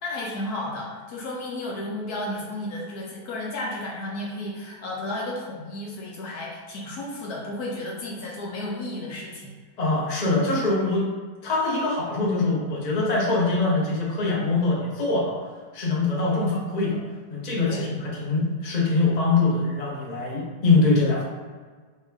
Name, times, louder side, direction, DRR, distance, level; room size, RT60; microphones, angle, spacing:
voice 1, 0.0-9.5 17.6-17.9, left 1 dB, 65° left, -3 dB, 1.3 m, -33 dB
voice 2, 9.8-11.1 11.4-15.4 15.7-17.0 17.3-21.2, left 3 dB, 30° left, -5 dB, 0.8 m, -23 dB
3.3 x 2.8 x 4.6 m, 1.5 s
omnidirectional pair, 1.8 m